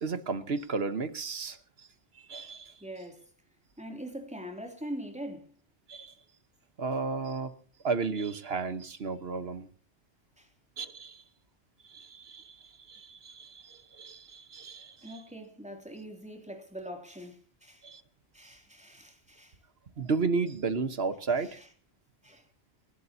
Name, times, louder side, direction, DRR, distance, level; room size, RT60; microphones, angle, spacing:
voice 1, 0.0-1.6 2.3-2.7 5.9-6.1 6.8-7.5 7.8-9.7 10.8-11.2 11.9-12.6 12.9-15.0 17.8-18.0 20.0-21.6, right 4 dB, 65° right, 1.5 m, -33 dB
voice 2, 2.8-3.3 3.8-5.5 10.4-10.5 15.0-17.9 18.3-19.6 21.4-21.7 22.2-22.5, equal, 5° right, 3.0 m, -43 dB
29.0 x 12.5 x 2.9 m
omnidirectional pair, 1.1 m